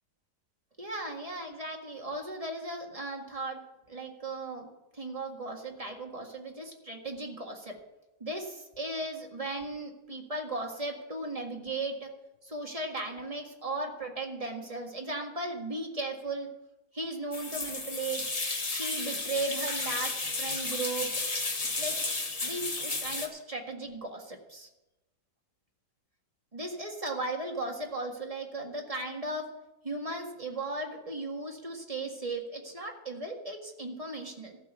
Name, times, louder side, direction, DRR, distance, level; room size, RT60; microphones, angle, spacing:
voice 1, 0.8-7.8 8.2-12.1 12.4-16.5 16.9-18.2 18.7-21.1 21.7-22.0 22.4-24.7 26.5-29.5 29.8-34.6, right 2 dB, 20° right, 1 dB, 1.8 m, -36 dB
sound 1, 17.3-23.3, left 3 dB, 25° left, 1.1 m, -33 dB
14.5 x 6.1 x 8.2 m, 0.97 s
omnidirectional pair, 1.8 m